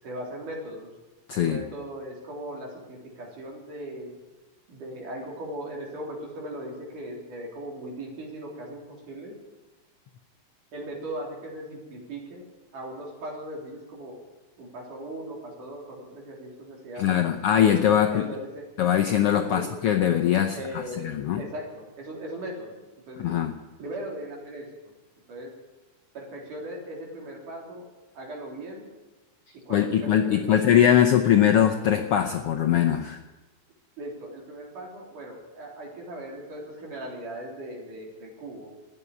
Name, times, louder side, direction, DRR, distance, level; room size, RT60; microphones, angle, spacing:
voice 1, 0.0-0.9 1.3-4.2 4.7-9.3 10.7-12.4 12.7-14.2 14.6-17.3 18.1-18.6 19.5-19.7 20.6-21.1 21.4-22.7 23.1-23.3 23.8-24.7 25.3-25.5 26.1-27.8 28.1-28.9 29.7-30.7 34.0-38.7, right 1 dB, 75° right, -2 dB, 5.1 m, -38 dB
voice 2, 1.3-1.6 16.9-18.2 18.8-21.4 23.2-23.6 29.5-33.2, left 10 dB, 75° left, 4 dB, 1.3 m, -22 dB
13.5 x 9.7 x 9.8 m, 1.1 s
omnidirectional pair, 3.6 m